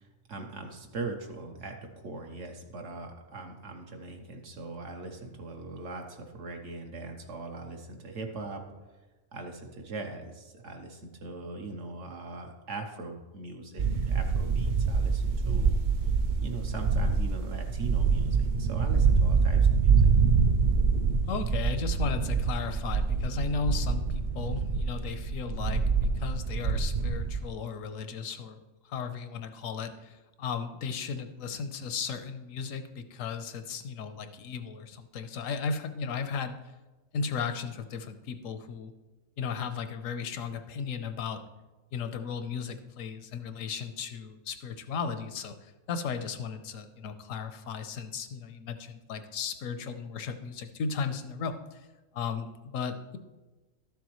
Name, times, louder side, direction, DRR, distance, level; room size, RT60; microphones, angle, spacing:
voice 1, 0.0-8.6 9.3-16.1 16.4-20.1, right 3 dB, 70° right, 3 dB, 1.2 m, -41 dB
sound 1, 13.8-27.4, right 5 dB, 85° right, 0.4 m, -25 dB
voice 2, 21.3-36.5 37.1-38.9 39.4-41.4 41.9-51.9 52.1-53.2, left 5 dB, 80° left, 9 dB, 1.1 m, -35 dB
12.5 x 7.1 x 3.1 m, 1.2 s
omnidirectional pair, 1.4 m